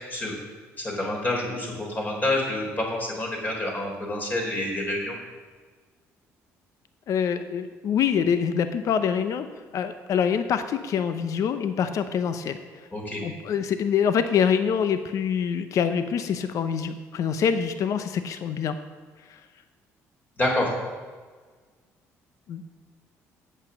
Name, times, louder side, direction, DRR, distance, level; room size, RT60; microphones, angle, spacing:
voice 1, 0.8-5.2 12.9-13.2 20.4-20.7, left 1 dB, 30° left, -1 dB, 3.7 m, -28 dB
voice 2, 7.1-9.5 9.7-12.6 13.2-18.8 19.3-19.4 22.5-22.6, left 7 dB, 60° left, 10 dB, 0.6 m, -25 dB
8.3 x 6.9 x 7.2 m, 1.5 s
cardioid pair, 85°, 6 cm